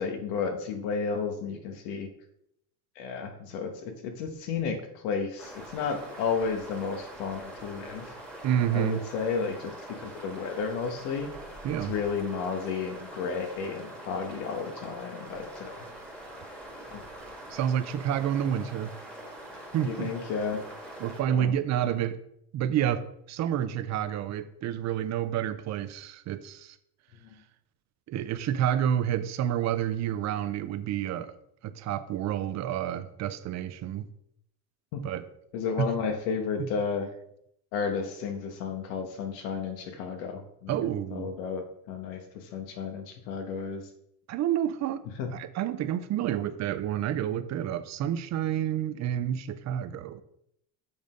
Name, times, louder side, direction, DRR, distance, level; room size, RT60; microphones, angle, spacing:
voice 1, 0.0-2.1 3.0-8.1 8.7-9.7 10.0-11.3 11.9-15.8 16.9-17.0 19.8-20.6 21.3-21.5 34.9-35.0 35.5-37.1 37.7-40.7 41.1-43.8 45.2-45.3, left 5 dB, 90° left, 5 dB, 1.4 m, -32 dB
sound 1, 5.4-21.2, right 1 dB, ahead, 1.4 m, -44 dB
voice 2, 8.4-9.0 11.6-12.0 17.5-18.9 19.7-20.1 21.0-22.2 22.5-26.8 28.1-31.3 31.6-34.1 35.0-35.3 35.8-35.9 36.6-36.7 40.7-41.3 44.3-45.0 45.3-50.2, right 10 dB, 35° right, 12 dB, 0.5 m, -29 dB
7.0 x 4.0 x 5.1 m, 0.75 s
cardioid pair, 130°, 48 cm